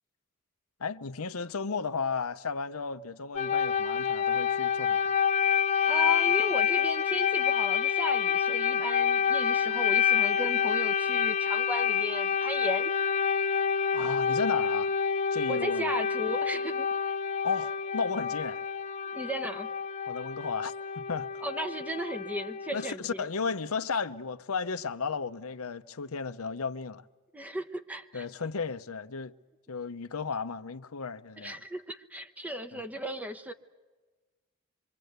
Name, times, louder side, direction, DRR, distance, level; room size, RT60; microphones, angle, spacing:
voice 1, 0.8-5.1 13.8-14.9 15.3-15.9 17.4-18.6 20.1-21.3 22.7-27.0 28.1-29.3 29.7-31.6 32.7-32.8, left 5 dB, 85° left, 0.8 m, -34 dB
sound 1, 3.3-22.9, left 7 dB, 30° left, 1.2 m, -28 dB
voice 2, 5.8-12.9 15.5-17.1 19.1-19.7 21.4-23.3 27.3-28.3 31.4-33.5, equal, 5° right, 1.0 m, -36 dB
26.5 x 24.5 x 8.1 m
head